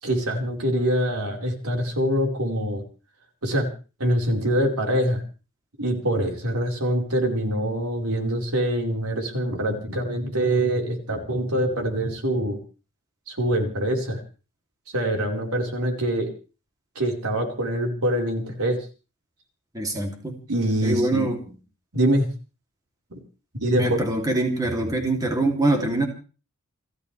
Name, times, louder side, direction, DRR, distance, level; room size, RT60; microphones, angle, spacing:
voice 1, 0.0-2.8 3.4-3.7 4.0-5.2 5.8-12.6 13.3-14.2 14.9-16.3 16.9-18.8 20.5-21.3 21.9-22.3 23.1-23.2 23.6-24.0, right 1 dB, 90° right, 2 dB, 4.6 m, -24 dB
voice 2, 19.7-20.4 20.8-21.4 23.7-26.1, right 2 dB, 15° right, 2 dB, 2.9 m, -24 dB
29.5 x 13.0 x 3.4 m, 0.36 s
head